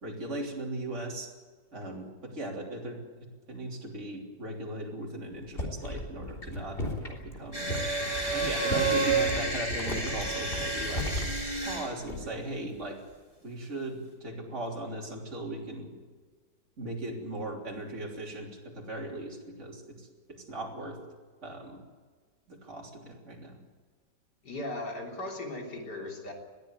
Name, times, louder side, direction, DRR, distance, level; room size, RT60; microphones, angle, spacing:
voice 1, 0.0-1.3 1.7-3.0 3.5-7.7 8.3-11.1 11.6-13.0 13.4-15.9 16.8-21.0 21.4-21.8 22.5-23.6, right 1 dB, 45° right, -2 dB, 3.7 m, -38 dB
sound 1, 5.3-12.5 12.8-13.1, left 1 dB, 30° left, 3.8 m, -36 dB
sound 2, 7.5-11.9, right 3 dB, 20° right, 5.5 m, -30 dB
voice 2, 24.4-26.3, left 2 dB, 75° left, 1 dB, 4.1 m, -37 dB
21.5 x 14.0 x 9.5 m, 1.5 s
omnidirectional pair, 1.8 m